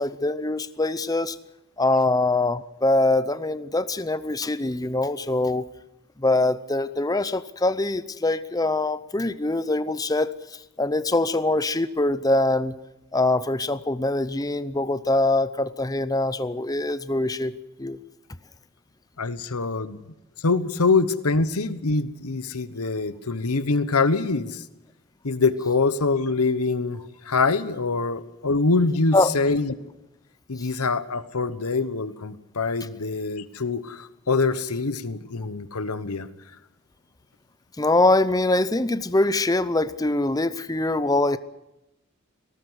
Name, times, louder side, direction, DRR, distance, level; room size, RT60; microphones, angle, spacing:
voice 1, 0.0-1.4 1.8-5.6 6.2-10.3 10.8-12.7 13.1-17.5 17.8-18.0 29.1-29.3 37.8-41.4, left 2 dB, 15° left, 14 dB, 0.6 m, -23 dB
voice 2, 19.2-20.0 20.4-24.6 25.2-27.0 27.2-29.7 30.5-36.3, left 3 dB, 85° left, 13 dB, 1.1 m, -24 dB
19.0 x 18.0 x 8.0 m, 0.92 s
head